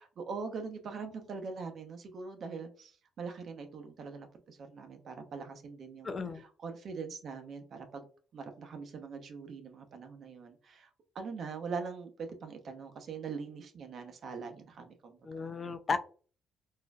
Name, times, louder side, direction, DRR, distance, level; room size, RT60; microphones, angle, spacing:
voice 1, 0.2-8.1 8.3-10.9 11.1-15.5, right 5 dB, 60° right, 5 dB, 0.8 m, -42 dB
voice 2, 6.0-6.4 15.3-16.0, left 4 dB, 40° left, 10 dB, 0.4 m, -34 dB
4.1 x 2.6 x 2.4 m, 0.40 s
cardioid pair, 90°, 0 cm